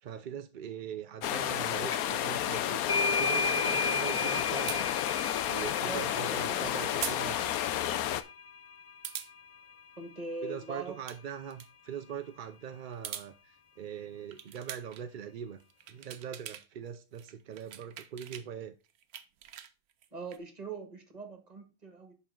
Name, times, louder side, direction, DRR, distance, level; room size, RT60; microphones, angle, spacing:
voice 1, 0.0-4.9 5.5-7.4 10.4-15.6 15.9-18.7, right 8 dB, 65° right, 0.5 m, -41 dB
sound 1, 1.2-8.2, left 11 dB, 85° left, 1.1 m, -31 dB
sound 2, 1.9-2.2 2.5-9.8, left 3 dB, 50° left, 0.4 m, -35 dB
sound 3, 4.7-4.8 7.0-7.2 7.5-7.6 9.0-9.3 10.8-11.2 11.5-11.7 12.8-13.3 14.3-15.0 15.6-16.7 16.9-18.5 18.9-20.4, right 11 dB, 90° right, 1.2 m, -42 dB
voice 2, 10.0-11.0 20.1-22.1, right 3 dB, 30° right, 1.7 m, -41 dB
10.5 x 4.3 x 3.8 m
omnidirectional pair, 1.5 m